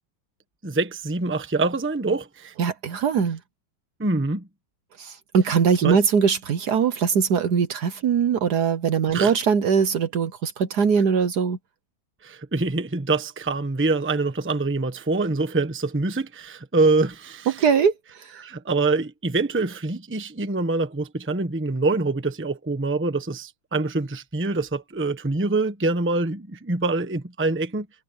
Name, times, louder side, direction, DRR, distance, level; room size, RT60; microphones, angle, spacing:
voice 1, 0.6-2.5 4.0-4.5 5.8-6.0 9.1-9.3 12.2-17.6 18.4-27.9, right 3 dB, 10° right, 0.9 m, -25 dB
voice 2, 2.6-3.4 5.0-11.6 17.5-17.9 18.2-18.3, right 6 dB, 60° right, 1.4 m, -21 dB
omnidirectional pair, 2.2 m